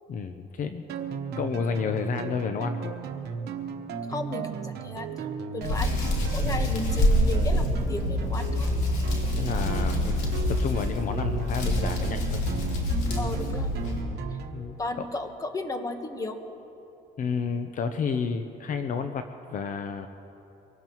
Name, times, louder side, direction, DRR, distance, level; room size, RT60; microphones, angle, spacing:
voice 1, 0.1-0.8 1.3-2.9 6.4-6.5 9.3-12.4 14.5-14.7 17.2-20.1, left 5 dB, 50° left, 7 dB, 0.7 m, -31 dB
sound 1, 0.9-14.6, right 6 dB, 75° right, 1.1 m, -36 dB
voice 2, 4.1-8.7 13.2-13.7 14.3-14.4 14.8-16.4, left 2 dB, 20° left, 6 dB, 1.3 m, -34 dB
Hands, 5.6-14.0, left 1 dB, 85° left, 3.3 m, -26 dB
24.0 x 18.0 x 3.1 m, 3.0 s
cardioid pair, 110°, 17 cm